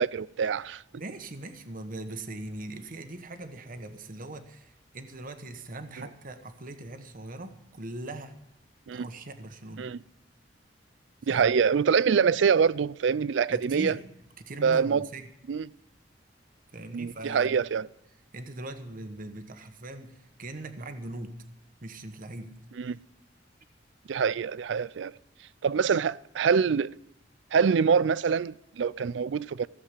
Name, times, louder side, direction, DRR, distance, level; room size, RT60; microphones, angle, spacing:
voice 1, 0.0-0.8 8.9-9.1 9.8-10.0 11.3-14.0 14.6-15.1 15.5-15.7 16.9-17.9 22.8-23.0 24.1-25.1 25.6-26.9 27.5-29.7, right 6 dB, 75° right, 0.4 m, -25 dB
voice 2, 0.9-8.3 8.9-9.9 11.3-11.6 13.5-14.0 14.4-15.3 16.7-17.6 18.3-21.4 21.8-22.5, right 2 dB, 50° right, 1.1 m, -40 dB
16.0 x 7.6 x 8.2 m
head